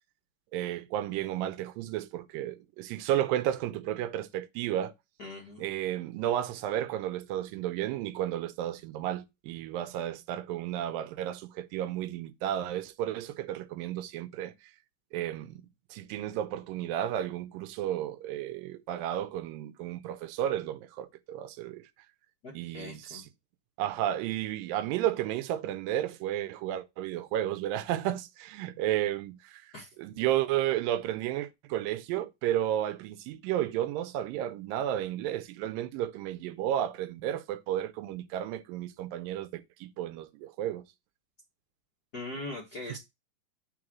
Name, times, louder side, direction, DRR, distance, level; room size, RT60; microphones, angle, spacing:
voice 1, 0.5-4.9 5.6-14.5 15.1-15.6 15.9-21.8 22.5-23.2 23.8-40.8 42.9-43.0, right 12 dB, 85° right, 2.2 m, -32 dB
voice 2, 5.2-5.7 22.4-23.2 29.7-29.9 42.1-43.0, left 2 dB, 45° left, 1.3 m, -41 dB
4.9 x 4.5 x 6.1 m
omnidirectional pair, 4.0 m